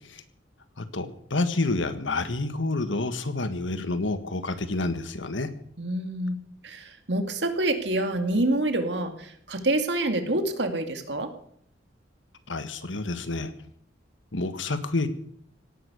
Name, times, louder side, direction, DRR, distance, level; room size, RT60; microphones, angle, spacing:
voice 1, 0.8-5.5 12.5-13.5 14.3-15.1, left 2 dB, 80° left, 10 dB, 1.6 m, -28 dB
voice 2, 5.8-6.4 6.6-11.3, right 1 dB, 65° right, 6 dB, 2.3 m, -27 dB
17.5 x 11.5 x 6.9 m, 0.66 s
head